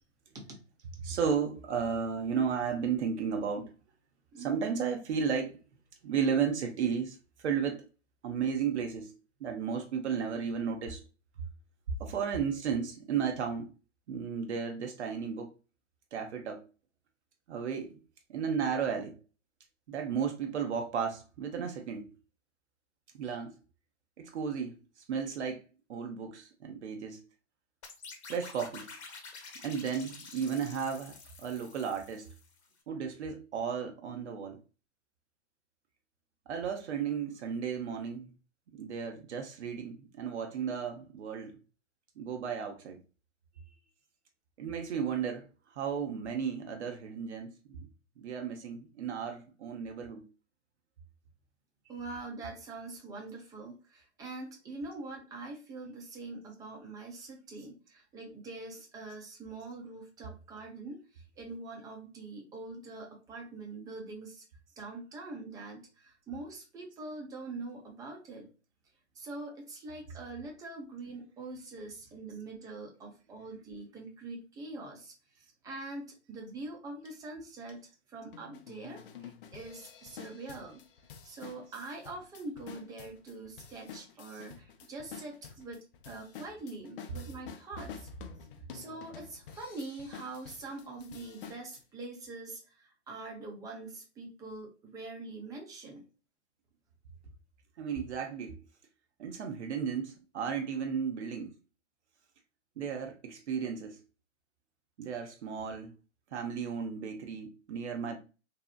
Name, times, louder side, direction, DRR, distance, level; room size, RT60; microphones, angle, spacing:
voice 1, 1.0-3.7 4.4-5.6 6.0-7.9 8.2-9.1 9.4-11.0 12.0-13.7 14.1-15.5 16.1-16.6 17.5-18.0 18.3-19.2 19.9-22.1 23.1-23.6 24.2-24.8 25.1-25.6 25.9-27.2 28.3-28.9 29.6-32.3 32.9-34.6 36.5-38.3 38.7-41.6 42.2-43.0 44.6-47.9 48.2-50.2 52.0-52.1 84.3-84.4 97.8-98.6 99.2-101.5 102.8-104.0 105.0-105.9 106.3-108.2, right 6 dB, 70° right, 0.6 m, -34 dB
voice 2, 4.3-4.7 51.9-64.4 64.8-68.5 69.1-80.8 81.2-88.1 88.7-96.0, right 2 dB, 10° right, 0.5 m, -44 dB
sound 1, 27.8-32.6, left 4 dB, 65° left, 0.9 m, -49 dB
sound 2, 77.0-77.1 77.7-77.8 78.3-91.8, left 7 dB, 50° left, 0.4 m, -49 dB
2.7 x 2.0 x 2.4 m
figure-of-eight pair, 115°, 35 cm